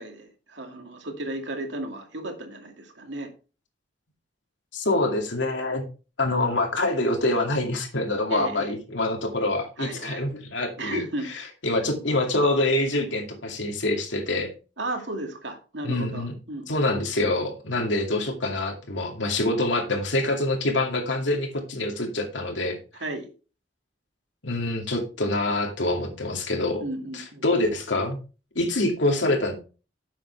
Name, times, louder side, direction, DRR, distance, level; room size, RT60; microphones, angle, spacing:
voice 1, 0.0-3.3 8.3-8.8 9.8-10.2 10.8-11.3 14.8-16.7 23.0-23.3 26.8-27.5, right 1 dB, 80° right, 3 dB, 2.3 m, -34 dB
voice 2, 4.7-5.8 6.2-14.5 15.8-16.3 16.7-22.8 24.4-26.8 27.1-28.2 28.5-29.5, left 2 dB, 90° left, 3 dB, 2.4 m, -25 dB
10.5 x 7.5 x 3.4 m, 0.34 s
head